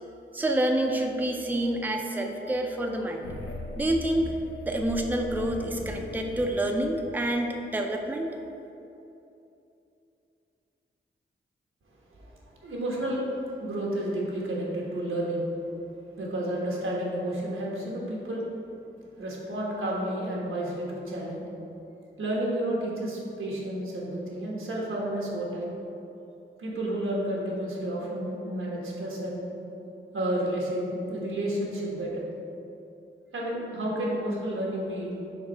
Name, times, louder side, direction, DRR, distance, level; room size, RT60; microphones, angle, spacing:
voice 1, 0.3-3.2 3.8-4.4 4.6-8.4, right 1 dB, 10° right, 2 dB, 0.5 m, -28 dB
sound 1, 3.2-7.4, left 1 dB, 80° left, 0.9 m, -39 dB
voice 2, 12.6-13.2 13.6-15.4 16.2-18.4 19.2-21.4 22.2-25.7 26.6-29.5 30.1-32.2 33.3-35.2, right 1 dB, 90° right, -4 dB, 1.2 m, -31 dB
4.8 x 3.7 x 5.4 m, 2.8 s
cardioid pair, 65°, 21 cm